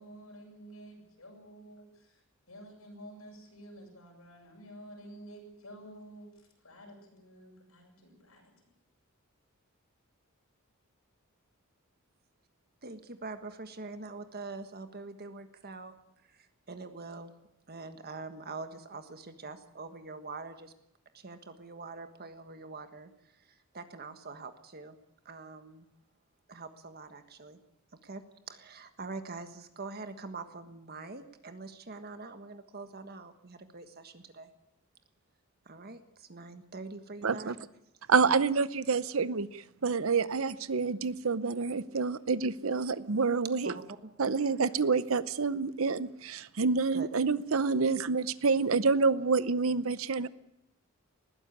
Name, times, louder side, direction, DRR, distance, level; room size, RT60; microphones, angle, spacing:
voice 1, 0.0-1.8 2.5-8.8, right 1 dB, 80° left, 7.8 m, -50 dB
voice 2, 12.8-15.9 16.3-17.3 17.7-20.7 21.1-23.1 23.4-25.0 25.2-25.9 26.5-27.6 28.0-34.5 35.6-37.7 38.3-38.4 43.6-44.1 46.9-47.1, right 3 dB, 45° right, 1.5 m, -44 dB
voice 3, 37.2-37.5 38.1-43.8 44.2-50.3, right 4 dB, 70° right, 0.7 m, -28 dB
20.0 x 15.5 x 8.5 m
head